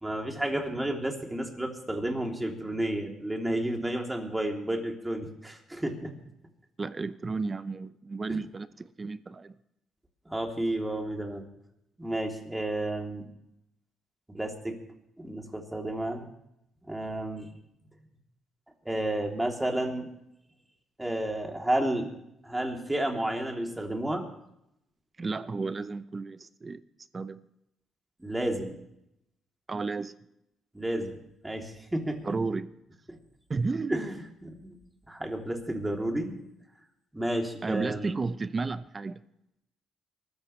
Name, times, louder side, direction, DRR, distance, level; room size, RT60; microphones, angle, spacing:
voice 1, 0.0-6.1 10.3-11.4 12.0-13.3 14.3-14.7 15.2-16.3 16.9-17.5 18.8-20.1 21.0-22.1 22.4-24.3 28.2-28.8 30.7-31.1 31.4-32.2 33.9-34.1 34.4-34.8 35.1-36.4 37.1-38.1, right 1 dB, 10° right, 3.1 m, -31 dB
voice 2, 6.8-9.5 25.2-26.8 27.1-27.4 29.7-30.1 32.2-32.7 33.5-34.0 37.6-39.2, right 4 dB, 30° right, 0.7 m, -32 dB
24.5 x 13.5 x 3.3 m
cardioid pair, 90°, 0 cm